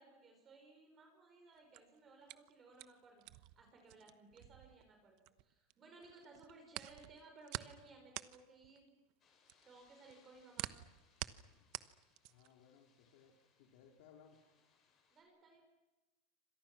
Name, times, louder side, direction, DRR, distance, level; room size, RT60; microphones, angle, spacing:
voice 1, 0.0-8.9 9.6-10.7 15.1-15.6, right 3 dB, 20° right, 3 dB, 5.0 m, -60 dB
sound 1, 1.5-5.7 6.0-12.6, right 18 dB, 50° right, 1.0 m, -48 dB
sound 2, 9.2-15.2, left 5 dB, 30° left, 7.0 m, -74 dB
voice 2, 11.2-11.7 12.3-14.4, left 7 dB, 65° left, 1 dB, 4.0 m, -65 dB
29.0 x 26.0 x 6.1 m, 1.1 s
supercardioid pair, 160°, 0 cm